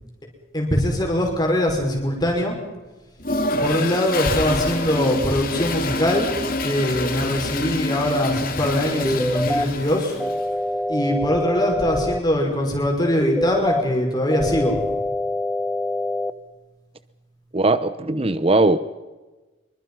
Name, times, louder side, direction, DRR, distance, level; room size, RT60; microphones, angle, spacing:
voice 1, 0.5-2.6 3.6-6.3 6.6-10.2 10.9-14.9, left 1 dB, 20° left, 5.5 m, -22 dB
Toilet flush, 3.2-10.5, left 2 dB, 45° left, 2.7 m, -27 dB
sound 1, 9.0-9.6 10.2-12.2 13.2-13.8 14.3-16.3, left 1 dB, 5° left, 0.9 m, -25 dB
voice 2, 17.5-18.8, right 2 dB, 30° right, 0.8 m, -19 dB
26.5 x 24.0 x 5.6 m
head